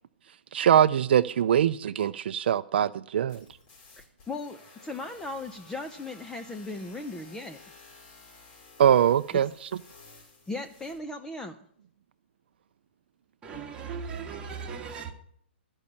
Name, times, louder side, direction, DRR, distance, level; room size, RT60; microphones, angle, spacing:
voice 1, 0.5-3.4 8.8-9.5, right 9 dB, 60° right, 0.4 m, -22 dB
sound 1, 3.3-11.0, left 4 dB, 40° left, 4.8 m, -53 dB
voice 2, 4.3-7.6 9.3-9.4 10.5-11.6, left 2 dB, 10° left, 0.6 m, -37 dB
voice 3, 13.4-15.1, right 6 dB, 15° right, 1.9 m, -37 dB
13.5 x 5.4 x 8.6 m
hypercardioid pair, 145°, 6 cm